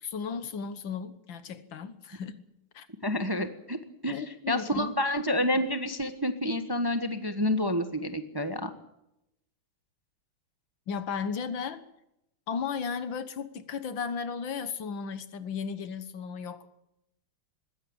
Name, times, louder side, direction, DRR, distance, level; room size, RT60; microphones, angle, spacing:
voice 1, 0.0-2.4 2.7-2.9 3.4-3.5 4.1-4.9 10.9-11.8 12.5-16.8, left 6 dB, 70° left, 12 dB, 2.0 m, -35 dB
voice 2, 3.0-3.8 4.0-8.7, left 1 dB, 15° right, 8 dB, 1.1 m, -29 dB
20.5 x 16.0 x 8.8 m, 0.85 s
omnidirectional pair, 2.2 m